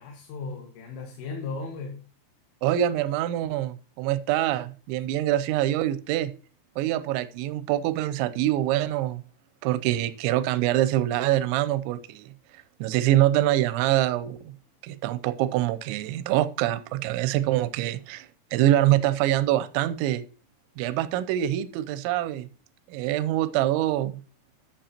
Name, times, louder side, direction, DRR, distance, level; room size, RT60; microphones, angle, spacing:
voice 1, 0.0-2.0, left 4 dB, 90° left, 4.1 m, -36 dB
voice 2, 2.6-6.3 6.8-9.2 9.6-12.3 12.8-14.5 14.8-20.2 20.8-22.5 22.9-24.2, right 13 dB, 80° right, 2.9 m, -25 dB
11.5 x 7.5 x 2.9 m
omnidirectional pair, 5.6 m